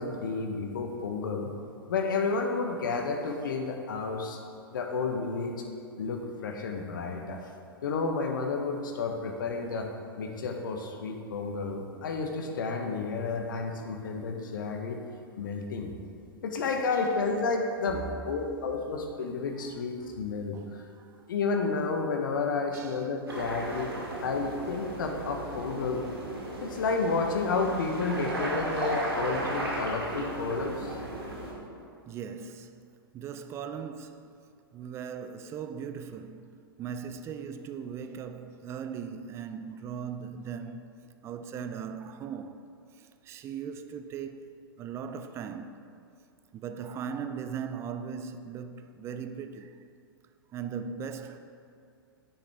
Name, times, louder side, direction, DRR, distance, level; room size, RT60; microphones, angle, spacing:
voice 1, 0.0-1.5 1.9-4.4 4.7-5.6 6.0-7.4 7.8-9.9 10.2-15.0 15.4-15.9 16.4-20.5 21.3-23.9 24.2-26.0 26.6-31.0, left 4 dB, 55° left, 1.1 m, -31 dB
voice 2, 20.5-21.1 22.7-23.0 23.9-24.1 32.1-34.3 34.7-36.5 36.8-40.9 41.2-42.6 43.0-45.8 46.5-49.8 50.5-51.4, right 7 dB, 20° right, 0.5 m, -39 dB
sound 1, 23.3-31.5, right 1 dB, 75° right, 2.4 m, -35 dB
9.9 x 9.1 x 3.5 m
figure-of-eight pair, 100°, 13 cm